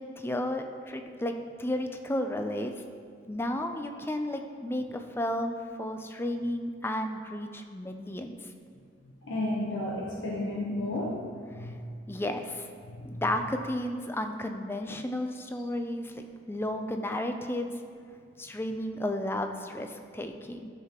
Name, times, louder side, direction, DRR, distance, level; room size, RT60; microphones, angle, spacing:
voice 1, 0.0-1.3 1.6-2.7 3.3-8.5 11.6-11.7 12.1-12.7 13.0-17.7 18.4-20.7, left 1 dB, 10° left, 5 dB, 0.4 m, -33 dB
voice 2, 9.2-11.2 11.5-11.8 12.9-13.2, left 1 dB, 75° left, -4 dB, 0.9 m, -32 dB
12.5 x 5.7 x 2.9 m, 2.2 s
head